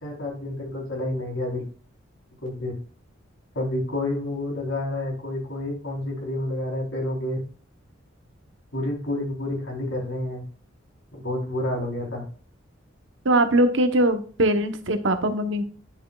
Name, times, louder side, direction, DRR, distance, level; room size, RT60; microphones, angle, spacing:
voice 1, 0.0-1.6 2.4-2.7 3.5-7.4 8.7-10.4 11.1-12.2, left 1 dB, 70° left, -1 dB, 4.1 m, -29 dB
voice 2, 13.2-15.6, right 1 dB, 70° right, 8 dB, 1.1 m, -21 dB
10.0 x 6.3 x 2.4 m, 0.40 s
head